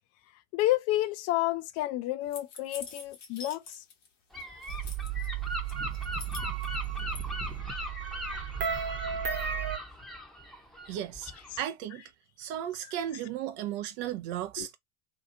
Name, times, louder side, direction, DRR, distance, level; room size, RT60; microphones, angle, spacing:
voice 1, 0.5-3.8 14.6-14.7, left 16 dB, 45° left, 0.4 m, -30 dB
sound 1, 2.3-4.1 4.3-5.3 5.7-7.2, left 4 dB, 85° left, 1.1 m, -45 dB
Gull seagull / Wind, 4.3-11.6, left 1 dB, ahead, 0.7 m, -40 dB
sound 2, 4.7-9.8, right 9 dB, 30° right, 1.1 m, -34 dB
voice 2, 10.9-11.3 11.6-12.1 12.4-14.8, right 11 dB, 55° right, 0.5 m, -35 dB
2.8 x 2.3 x 2.4 m
hypercardioid pair, 80°, 36 cm